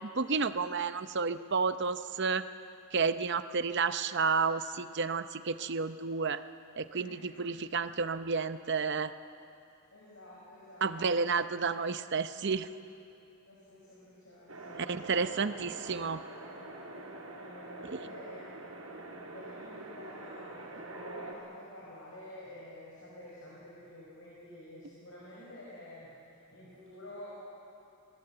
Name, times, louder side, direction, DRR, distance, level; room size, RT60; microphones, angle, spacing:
voice 1, 0.0-2.4 2.9-6.4 6.8-9.1 10.8-12.7 14.9-16.2 17.9-18.0, right 5 dB, 55° right, 11 dB, 0.7 m, -31 dB
voice 2, 7.0-7.5 9.9-11.2 13.5-14.8 17.3-18.7 19.3-27.3, left 1 dB, 60° left, -6 dB, 5.5 m, -50 dB
sound 1, 14.5-21.3, right 2 dB, 75° right, 4.1 m, -45 dB
26.5 x 20.0 x 7.9 m, 2.7 s
head